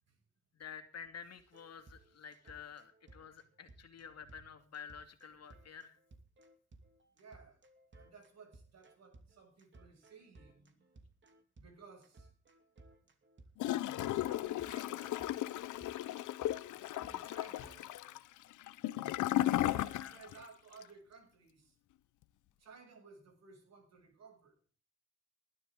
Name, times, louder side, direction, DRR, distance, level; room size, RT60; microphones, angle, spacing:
voice 1, 0.5-6.0 19.9-20.2, left 7 dB, 55° left, 7 dB, 2.5 m, -50 dB
sound 1, 1.4-18.2, right 2 dB, 40° right, 2.9 m, -61 dB
voice 2, 4.2-4.6 5.4-5.5 7.1-7.6 7.9-10.9 11.6-12.3 14.0-15.2 16.5-17.9 19.4-21.8 22.6-24.6, right 4 dB, 60° right, 5 dB, 7.1 m, -58 dB
Gurgling / Toilet flush, 13.6-20.4 20.7-20.8, left 14 dB, 80° left, 0.8 m, -35 dB
19.5 x 12.0 x 3.9 m, 0.39 s
cardioid pair, 90°, 30 cm